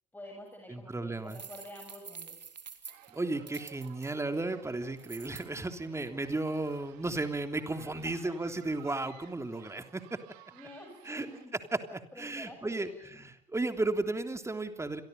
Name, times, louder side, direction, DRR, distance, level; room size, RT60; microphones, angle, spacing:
voice 1, 0.1-2.4 8.0-8.4 10.5-11.6 12.1-13.2, left 1 dB, 10° left, 2 dB, 7.0 m, -49 dB
voice 2, 0.7-1.4 3.1-10.2 11.0-11.3 11.9-15.0, right 2 dB, 15° right, 8 dB, 3.3 m, -34 dB
sound 1, 1.3-4.1 5.0-5.5, right 6 dB, 90° right, 2.2 m, -47 dB
sound 2, 2.9-11.5, right 13 dB, 65° right, 2.9 m, -57 dB
29.0 x 23.5 x 5.5 m, 0.69 s
figure-of-eight pair, 65°, 21 cm